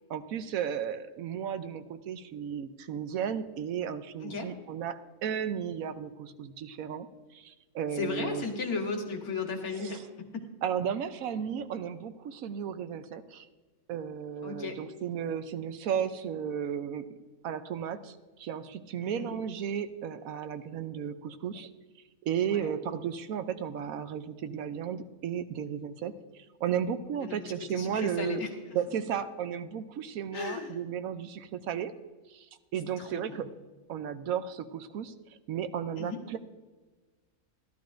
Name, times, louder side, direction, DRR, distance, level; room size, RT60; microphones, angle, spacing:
voice 1, 0.1-7.1 7.3-8.4 9.8-9.9 10.6-13.5 13.9-17.2 17.4-21.7 22.2-28.4 28.7-31.9 32.3-33.5 33.9-35.1 35.5-36.4, right 8 dB, 75° right, 11 dB, 1.1 m, -34 dB
voice 2, 4.2-4.5 7.9-10.5 14.4-14.8 19.0-19.4 22.5-22.7 27.2-28.5 30.3-30.8 33.0-33.4 36.0-36.2, left 4 dB, 85° left, 2 dB, 1.9 m, -36 dB
13.5 x 12.5 x 2.5 m, 1.3 s
omnidirectional pair, 1.5 m